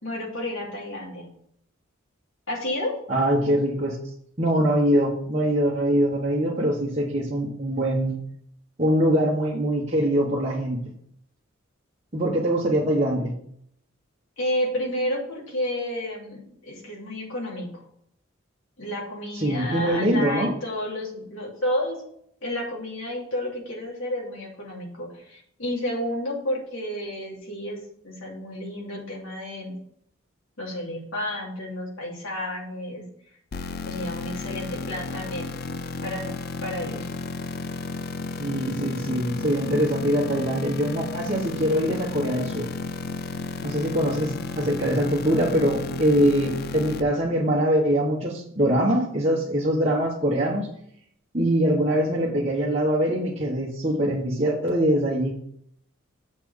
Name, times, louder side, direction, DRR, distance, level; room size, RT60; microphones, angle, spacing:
voice 1, 0.0-1.3 2.5-2.9 14.4-17.7 18.8-22.0 22.4-27.8 28.0-29.7 30.6-33.0 33.9-35.6 36.0-36.4 36.6-37.1, left 1 dB, 70° left, -3 dB, 3.0 m, -31 dB
voice 2, 3.1-4.0 4.4-8.2 8.8-10.8 12.1-13.3 19.3-20.5 38.4-42.7 43.6-50.7 51.3-55.3, right 1 dB, 30° right, -6 dB, 1.3 m, -23 dB
sound 1, 33.5-47.0, left 3 dB, 50° left, 0.5 m, -33 dB
7.4 x 4.4 x 6.9 m, 0.68 s
head